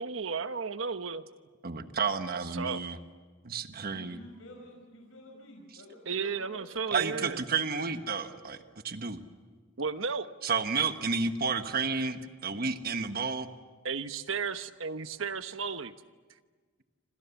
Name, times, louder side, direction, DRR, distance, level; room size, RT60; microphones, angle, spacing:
voice 1, 0.0-1.2 2.3-2.8 6.1-7.4 9.8-10.3 13.8-15.9, right 5 dB, 75° right, 11 dB, 1.1 m, -34 dB
voice 2, 1.6-3.0 3.4-4.2 6.9-8.6 8.8-9.2 10.4-13.5, right 5 dB, 50° right, 8 dB, 1.3 m, -31 dB
voice 3, 3.8-6.6 8.2-8.6, left 1 dB, 90° left, 1 dB, 5.0 m, -50 dB
28.5 x 26.0 x 7.1 m, 1.4 s
head